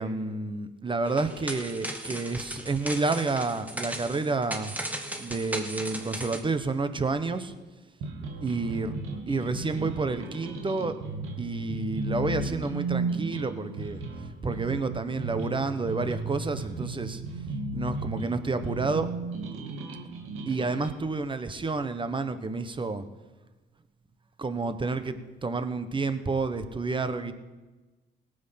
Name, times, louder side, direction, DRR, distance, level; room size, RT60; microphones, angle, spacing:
voice 1, 0.0-4.7 5.2-7.5 8.4-8.9 9.3-11.0 11.4-14.0 14.4-17.2 17.7-19.1 20.5-23.0 24.4-27.3, right 3 dB, 25° right, 10 dB, 1.2 m, -30 dB
sound 1, 1.1-6.4, right 1 dB, 5° right, 1.8 m, -37 dB
sound 2, 8.0-21.0, right 2 dB, 90° right, 2.0 m, -35 dB
18.0 x 8.0 x 5.9 m, 1.2 s
cardioid pair, 90°, 20 cm